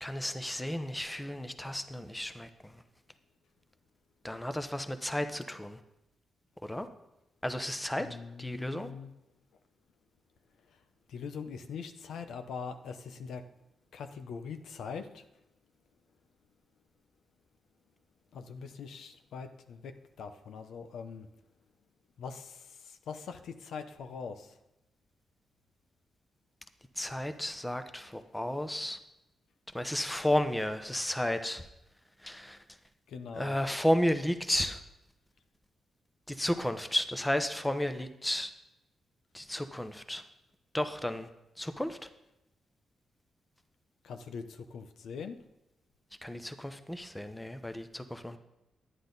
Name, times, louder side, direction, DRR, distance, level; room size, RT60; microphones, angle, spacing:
voice 1, 0.0-2.7 4.2-5.8 6.6-6.9 7.4-8.1 8.4-8.9 27.0-29.0 29.7-31.6 32.2-32.6 33.4-34.8 36.3-38.5 39.3-40.2 40.7-41.3 41.6-42.0 46.2-48.4, left 1 dB, 10° left, 9 dB, 0.9 m, -32 dB
voice 2, 8.0-9.1 11.1-13.4 13.9-15.2 18.3-21.3 22.2-24.5 33.1-33.6 44.0-45.4, left 5 dB, 85° left, 8 dB, 0.8 m, -42 dB
11.0 x 10.0 x 4.0 m, 0.90 s
cardioid pair, 90°, 0 cm